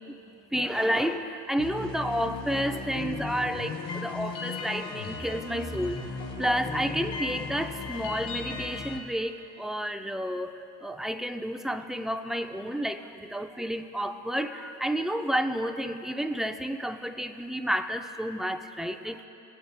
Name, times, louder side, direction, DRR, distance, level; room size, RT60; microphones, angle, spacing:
voice 1, 0.5-6.0 6.4-10.5 10.8-19.3, equal, ahead, 7 dB, 0.7 m, -30 dB
sound 1, 1.6-9.0, left 4 dB, 60° left, 2.1 m, -36 dB
20.0 x 9.7 x 2.2 m, 2.9 s
hypercardioid pair, 45°, 47 cm